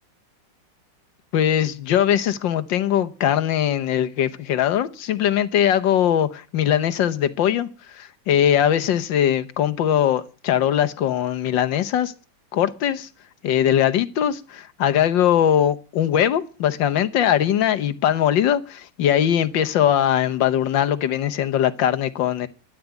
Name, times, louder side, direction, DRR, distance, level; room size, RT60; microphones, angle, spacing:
voice 1, 1.3-12.1 12.5-13.1 13.4-22.5, left 10 dB, 80° left, 1.7 m, -21 dB
13.0 x 10.5 x 8.2 m
omnidirectional pair, 2.0 m